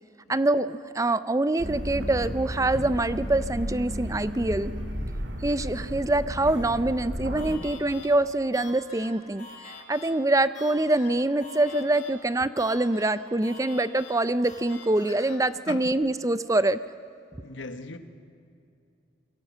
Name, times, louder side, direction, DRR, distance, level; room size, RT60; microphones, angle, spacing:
voice 1, 0.3-4.7 5.4-16.8, right 2 dB, 15° right, 0.5 m, -25 dB
sound 1, 1.6-7.6, equal, 65° right, 3.0 m, -33 dB
sound 2, 7.4-15.4, left 4 dB, 45° left, 5.2 m, -46 dB
voice 2, 17.4-18.0, left 3 dB, 75° left, 1.6 m, -38 dB
27.5 x 22.5 x 7.4 m
head